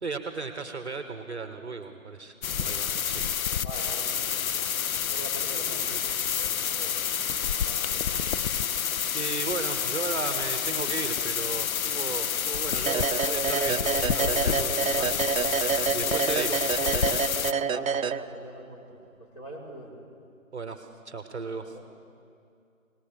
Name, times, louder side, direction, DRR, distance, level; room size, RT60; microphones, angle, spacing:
voice 1, 0.0-3.2 9.1-17.2 20.5-21.7, right 4 dB, 50° right, 7 dB, 0.9 m, -36 dB
sound 1, 2.4-17.5, left 8 dB, 75° left, 0.5 m, -28 dB
voice 2, 3.6-4.7 5.1-7.0 7.6-8.3 17.3-19.0 19.3-20.0 21.6-21.8, right 1 dB, 30° left, -8 dB, 3.9 m, -43 dB
sound 2, 6.2-11.6, right 2 dB, ahead, 1.8 m, -51 dB
sound 3, 12.9-18.7, right 7 dB, 70° right, 0.5 m, -28 dB
20.0 x 19.0 x 3.4 m, 2.4 s
figure-of-eight pair, 170°, 42 cm